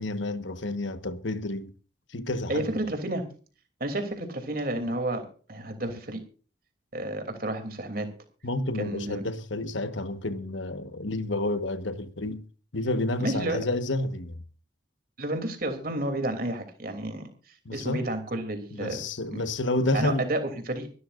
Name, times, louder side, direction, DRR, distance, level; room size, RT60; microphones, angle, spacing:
voice 1, 0.0-1.7 2.1-2.8 8.4-12.4 12.7-14.4 17.6-18.1 18.7-20.3, left 2 dB, 75° left, 1.3 m, -30 dB
voice 2, 2.5-3.2 3.8-5.2 5.5-6.2 6.9-8.1 8.8-9.2 13.2-13.6 15.2-17.3 17.7-19.0 19.3-19.4 19.9-20.4 20.7-20.9, right 1 dB, 50° right, 3.0 m, -30 dB
25.5 x 12.5 x 2.6 m
head